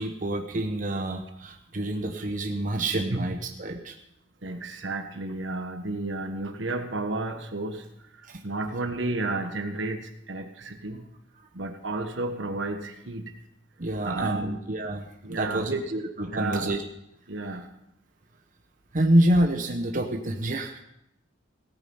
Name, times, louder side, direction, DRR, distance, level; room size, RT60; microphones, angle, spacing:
voice 1, 0.0-3.9 8.3-8.4 11.4-11.5 13.8-16.8 18.9-20.8, right 1 dB, 45° right, 3 dB, 1.0 m, -27 dB
voice 2, 4.4-7.9 8.4-11.0 11.5-13.3 14.0-14.6 15.2-15.8 16.3-16.7 17.3-17.7, right 2 dB, 75° right, 6 dB, 1.4 m, -32 dB
17.0 x 9.0 x 5.6 m, 0.80 s
head